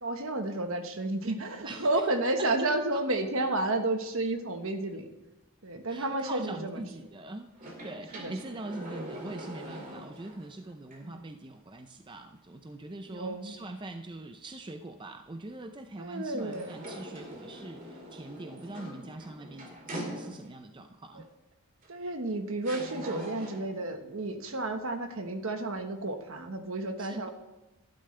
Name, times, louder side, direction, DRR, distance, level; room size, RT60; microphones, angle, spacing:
voice 1, 0.0-5.1 5.6-6.8 8.1-8.3 11.0-11.2 13.1-13.5 16.0-16.7 21.9-27.3, right 2 dB, 65° right, 6 dB, 1.3 m, -31 dB
voice 2, 1.6-2.1 2.4-2.5 2.9-3.0 5.9-7.5 7.8-21.3 27.0-27.3, right 2 dB, 20° right, 6 dB, 0.5 m, -43 dB
sound 1, 7.5-10.5 10.9-11.0 16.4-20.7 21.8-21.9 22.6-23.8, right 1 dB, 40° right, 2.3 m, -42 dB
12.5 x 11.5 x 3.3 m, 1.1 s
head